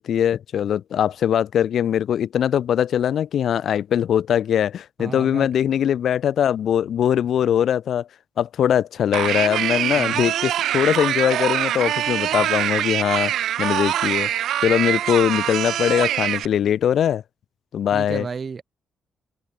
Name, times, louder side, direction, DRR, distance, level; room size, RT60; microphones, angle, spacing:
voice 1, 0.0-8.1 8.4-13.3 13.6-14.3 14.6-17.2 17.7-18.3, left 9 dB, 65° left, 0.6 m, -21 dB
voice 2, 5.0-5.5 9.9-10.3 17.9-18.6, right 5 dB, 35° right, 3.2 m, -33 dB
sound 1, 9.1-16.4, right 11 dB, 85° right, 1.5 m, -24 dB
cardioid pair, 130°, 0 cm